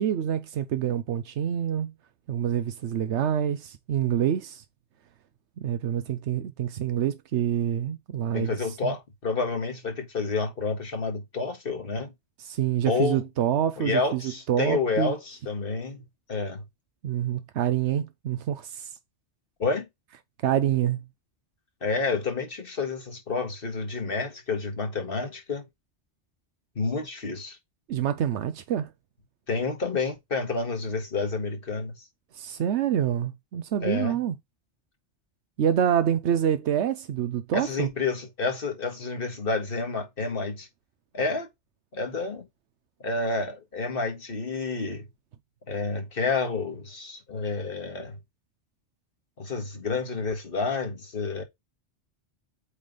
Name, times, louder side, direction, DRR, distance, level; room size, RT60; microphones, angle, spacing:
voice 1, 0.0-1.9 2.3-4.6 5.6-9.0 12.4-14.2 14.5-15.2 17.0-19.0 20.4-21.0 27.9-28.9 32.3-34.4 35.6-37.9, right 10 dB, 85° right, 1.0 m, -26 dB
voice 2, 8.3-12.1 12.9-13.2 13.8-16.0 16.3-16.6 19.6-19.9 21.8-25.6 26.8-27.6 29.5-31.9 33.8-34.2 37.5-40.7 41.1-41.5 41.9-42.5 43.0-45.1 45.7-48.2 49.4-51.4, left 4 dB, 55° left, 1.8 m, -29 dB
8.4 x 3.3 x 3.9 m
omnidirectional pair, 1.1 m